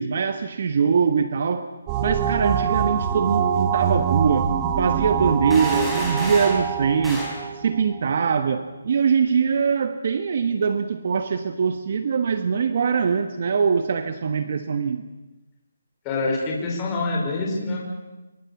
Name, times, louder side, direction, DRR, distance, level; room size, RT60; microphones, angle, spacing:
voice 1, 0.0-1.7 2.0-4.5 4.8-7.3 7.5-15.0, right 6 dB, 45° right, 10 dB, 1.3 m, -22 dB
sound 1, 1.9-8.3, right 8 dB, 20° right, 1.5 m, -25 dB
sound 2, 5.5-6.7 7.0-7.4, left 1 dB, ahead, 4.3 m, -31 dB
voice 2, 16.1-17.8, left 2 dB, 15° left, -3 dB, 5.3 m, -25 dB
26.5 x 23.5 x 7.2 m, 1.1 s
hypercardioid pair, 170°, 0 cm